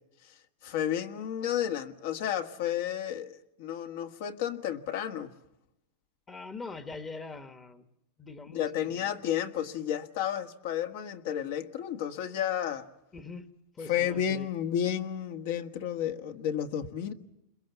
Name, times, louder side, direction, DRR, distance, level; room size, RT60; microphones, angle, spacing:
voice 1, 0.2-5.3 8.5-12.9 13.9-17.1, left 10 dB, 60° left, 1.6 m, -32 dB
voice 2, 6.3-7.9 8.2-9.2 13.1-13.5 13.7-14.5, left 3 dB, 15° left, 1.1 m, -43 dB
29.5 x 22.0 x 7.1 m
supercardioid pair, 160°, 0 cm